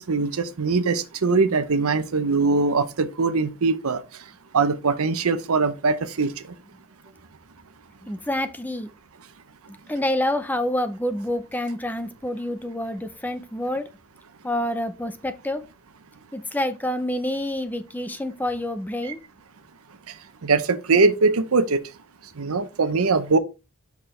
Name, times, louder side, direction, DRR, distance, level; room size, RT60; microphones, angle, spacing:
voice 1, 0.0-4.0 4.5-6.3 20.4-21.8 22.4-23.4, right 4 dB, 80° right, 0.8 m, -21 dB
voice 2, 8.0-8.9 9.7-13.9 14.4-15.6 16.3-19.2, left 1 dB, 10° left, 0.5 m, -27 dB
6.9 x 5.9 x 3.2 m
head